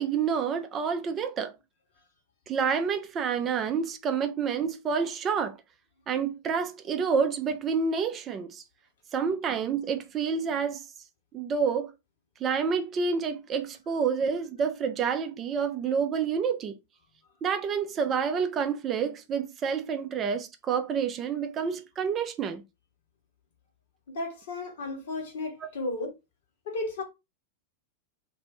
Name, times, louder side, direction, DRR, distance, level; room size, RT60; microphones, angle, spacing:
voice 1, 0.0-1.5 2.5-5.5 6.1-8.6 9.1-10.8 11.3-11.9 12.4-16.8 17.4-22.6, right 6 dB, 30° right, 0.4 m, -28 dB
voice 2, 24.1-26.1 26.7-27.0, left 2 dB, 60° left, 1.2 m, -33 dB
2.6 x 2.5 x 3.2 m
figure-of-eight pair, 90°, 0 cm